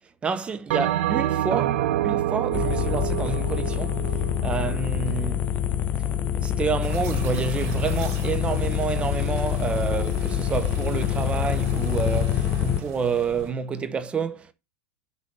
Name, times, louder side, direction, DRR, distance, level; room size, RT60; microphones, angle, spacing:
voice 1, 0.2-5.5 6.4-14.5, right 6 dB, 15° right, 0.8 m, -29 dB
Bell, 0.7-5.3, right 12 dB, 65° right, 0.8 m, -27 dB
sound 1, 2.5-12.8, left 10 dB, 20° left, 0.5 m, -26 dB
sound 2, 6.8-13.5, right 3 dB, 50° right, 3.8 m, -38 dB
6.4 x 5.2 x 6.8 m
supercardioid pair, 160°, 8 cm